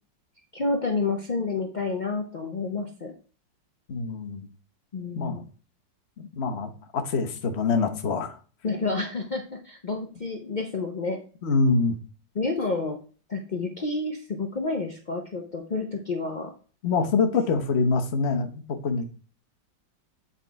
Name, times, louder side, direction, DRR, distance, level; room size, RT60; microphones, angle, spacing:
voice 1, 0.5-3.1 4.9-5.4 8.6-11.2 12.4-13.0 13.3-16.5, left 3 dB, 70° left, 4 dB, 0.4 m, -29 dB
voice 2, 3.9-4.5 5.1-5.4 6.2-8.4 11.4-11.9 16.8-19.0, left 4 dB, 45° left, 7 dB, 1.0 m, -25 dB
8.3 x 4.2 x 4.6 m, 0.39 s
omnidirectional pair, 2.0 m